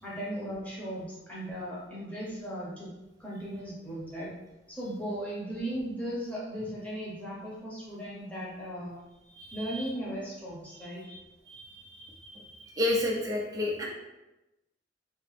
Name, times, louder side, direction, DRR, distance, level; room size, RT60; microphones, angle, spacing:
voice 1, 0.0-2.9 3.2-4.3 4.7-8.9 9.5-11.0, equal, 10° left, -7 dB, 1.0 m, -37 dB
voice 2, 9.4-9.9 11.1-11.2 11.5-13.9, left 1 dB, 20° right, -3 dB, 0.4 m, -32 dB
2.9 x 2.8 x 3.4 m, 1.0 s
head